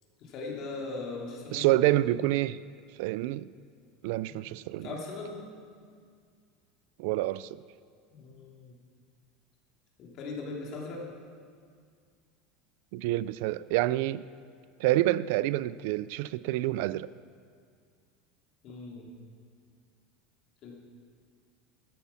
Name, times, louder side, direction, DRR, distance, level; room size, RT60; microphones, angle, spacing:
voice 1, 0.2-2.1 4.3-4.4 4.8-5.4 8.1-8.7 10.0-11.0 18.6-19.1 20.6-20.8, left 3 dB, 40° left, -2 dB, 3.1 m, -39 dB
voice 2, 1.5-2.6 3.0-3.5 4.0-4.9 7.0-7.6 12.9-14.2 14.8-17.1, right 16 dB, 65° right, 18 dB, 0.3 m, -27 dB
13.0 x 10.5 x 7.1 m, 2.1 s
supercardioid pair, 155°, 0 cm